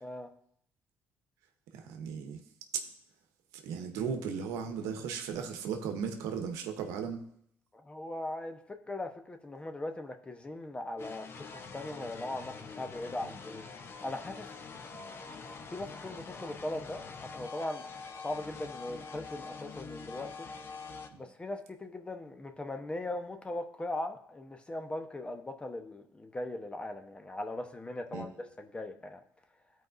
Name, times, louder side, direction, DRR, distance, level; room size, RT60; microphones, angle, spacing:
voice 1, 1.7-2.4 2.7-2.8 3.5-7.2 13.2-13.3 14.9-15.1 21.1-21.3 28.1-28.3, right 6 dB, 90° right, 6 dB, 0.9 m, -36 dB
voice 2, 7.9-13.7 14.0-14.5 15.7-17.0 17.3-17.9 18.2-20.5 21.2-28.3 28.6-29.2, left 1 dB, 20° left, 7 dB, 1.0 m, -39 dB
sound 1, 11.0-21.1, left 4 dB, 50° left, 0.8 m, -45 dB
14.0 x 4.7 x 2.6 m, 0.70 s
supercardioid pair, 75°, 5 cm